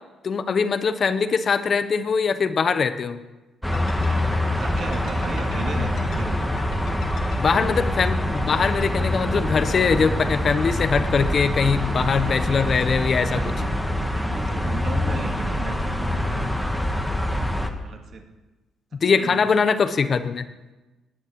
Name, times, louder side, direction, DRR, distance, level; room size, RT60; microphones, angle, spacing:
voice 1, 0.2-3.2 7.4-13.4 19.0-20.5, left 5 dB, 45° left, 11 dB, 1.0 m, -22 dB
sound 1, 3.6-9.9, left 5 dB, 70° left, 2.1 m, -42 dB
sound 2, 3.6-17.7, left 1 dB, 5° left, 1.5 m, -25 dB
voice 2, 3.9-6.6 11.6-13.7 14.1-17.3 17.8-18.3 19.0-19.4, right 4 dB, 60° right, 3 dB, 2.3 m, -37 dB
19.0 x 6.4 x 8.8 m, 1.1 s
cardioid pair, 90°, 0 cm